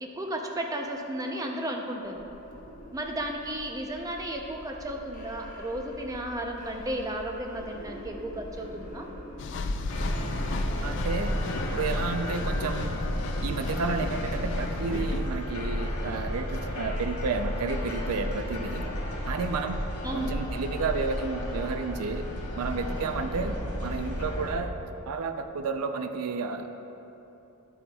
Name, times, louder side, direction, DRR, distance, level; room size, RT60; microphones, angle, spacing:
voice 1, 0.0-2.2 2.9-9.1 20.0-20.4, right 1 dB, 15° right, 2 dB, 0.5 m, -34 dB
sound 1, 2.0-14.8, equal, 35° left, 1.1 m, -47 dB
sound 2, 9.4-15.3, left 3 dB, 55° left, 0.4 m, -36 dB
sound 3, 9.9-24.6, left 1 dB, 85° left, 1.3 m, -32 dB
voice 2, 10.8-11.4 11.7-13.0 13.4-18.9 19.3-19.8 20.1-22.2 22.6-24.7 25.1-26.7, right 4 dB, 85° right, 8 dB, 0.4 m, -31 dB
10.0 x 8.0 x 2.3 m, 3.0 s
head